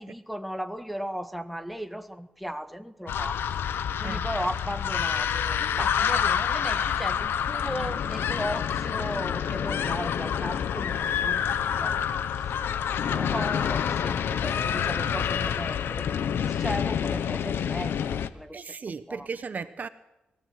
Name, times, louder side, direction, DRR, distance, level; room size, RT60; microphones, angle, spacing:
voice 1, 0.0-3.4 4.0-11.4 11.8-12.0 13.0-18.6 19.1-19.3, equal, ahead, 1.7 m, -36 dB
sound 1, 3.1-18.3, left 8 dB, 85° left, 1.0 m, -28 dB
voice 2, 18.5-19.9, right 5 dB, 50° right, 1.0 m, -36 dB
23.5 x 16.5 x 7.9 m
cardioid pair, 75°, 4 cm